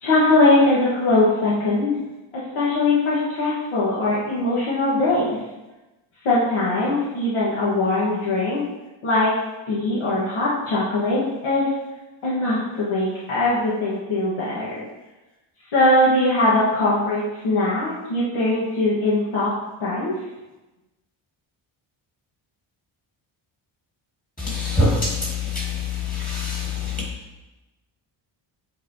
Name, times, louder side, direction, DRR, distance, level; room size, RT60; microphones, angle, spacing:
voice 1, 0.0-1.9 2.3-5.4 6.2-8.6 9.0-9.3 9.7-11.7 12.2-14.8 15.7-19.5 19.8-20.1, left 2 dB, 90° left, -9 dB, 1.5 m, -21 dB
voice 2, 24.4-25.7 26.1-26.7, left 2 dB, 15° left, -4 dB, 1.7 m, -23 dB
8.3 x 4.1 x 2.7 m, 1.1 s
wide cardioid pair, 165°, 49 cm